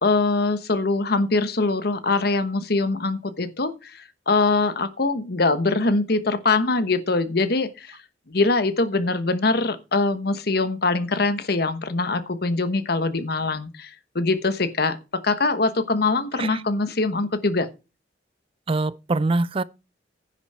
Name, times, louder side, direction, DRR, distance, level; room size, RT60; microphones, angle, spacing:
voice 1, 0.0-8.0 8.3-17.7, left 3 dB, 60° left, 1.1 m, -23 dB
voice 2, 18.7-19.6, right 2 dB, 30° right, 0.4 m, -24 dB
10.5 x 7.1 x 4.3 m
head